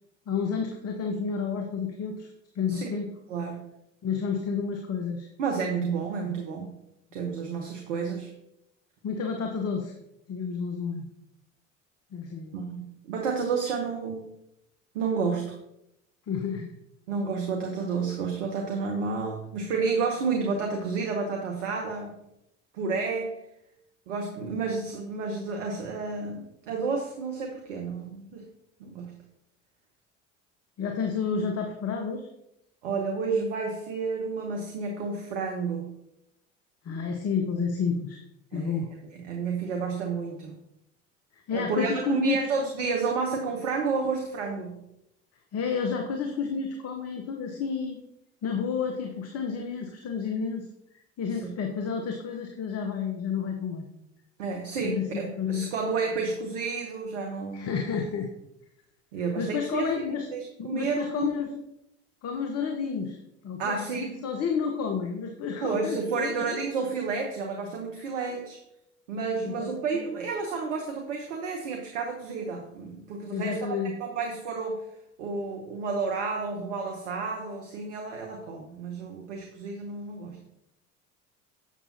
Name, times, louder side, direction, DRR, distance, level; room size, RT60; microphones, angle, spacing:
voice 1, 0.3-3.1 4.0-5.3 5.7-5.9 6.3-6.4 9.0-9.9 10.3-11.0 12.1-12.6 16.3-16.7 30.8-32.3 36.8-38.2 38.5-38.9 41.3-42.4 45.5-48.0 48.4-50.7 51.2-53.9 54.8-55.7 57.5-58.3 59.2-60.2 60.6-61.5 62.2-63.2 63.4-66.6 69.4-70.1 73.3-73.9, left 6 dB, 40° left, 4 dB, 1.0 m, -30 dB
voice 2, 3.3-3.6 5.4-6.7 7.1-8.3 12.5-14.3 14.9-15.5 17.1-22.2 22.7-23.3 24.1-28.4 28.8-29.1 32.8-35.9 38.5-38.8 39.1-40.5 41.5-44.8 51.4-51.5 54.4-57.7 59.1-59.9 60.3-61.3 63.6-64.2 65.6-68.6 69.1-74.8 75.2-80.4, right 4 dB, 75° right, 1 dB, 1.0 m, -31 dB
7.2 x 6.8 x 2.8 m, 0.84 s
figure-of-eight pair, 60°, 37 cm